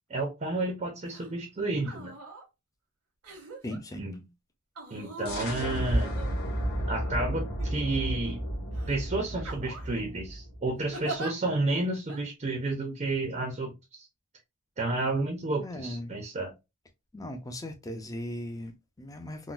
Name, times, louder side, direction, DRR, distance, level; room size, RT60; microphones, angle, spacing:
voice 1, 0.1-2.1 4.0-4.2 4.9-6.1 6.9-8.4 8.9-14.1 14.8-16.5, right 2 dB, 30° right, 0.5 m, -31 dB
sound 1, 1.1-1.3 1.8-2.4 3.2-3.8 4.8-6.8 7.6-8.3 8.7-8.9 9.4-10.0 10.9-11.3 12.1-12.2, right 2 dB, 90° right, 1.2 m, -42 dB
voice 2, 3.6-4.0 15.6-16.1 17.1-19.5, left 1 dB, 15° left, 0.5 m, -38 dB
sound 2, 5.3-10.8, equal, 50° left, 1.4 m, -32 dB
3.8 x 2.1 x 2.4 m
head